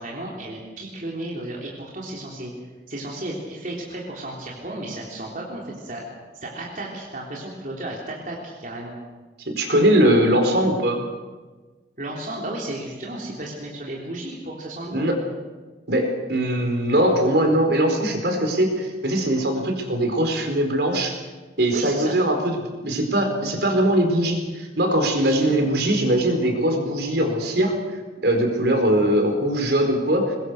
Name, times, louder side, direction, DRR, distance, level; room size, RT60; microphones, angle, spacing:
voice 1, 0.0-2.5 2.9-6.1 6.4-8.9 12.0-15.0 21.7-22.2 25.1-25.5, right 1 dB, 50° right, -3 dB, 3.6 m, -33 dB
voice 2, 9.5-11.0 14.9-15.2 15.9-21.2 21.6-27.8 28.2-30.4, right 1 dB, 65° right, 4 dB, 4.6 m, -21 dB
24.5 x 21.5 x 6.5 m, 1.3 s
head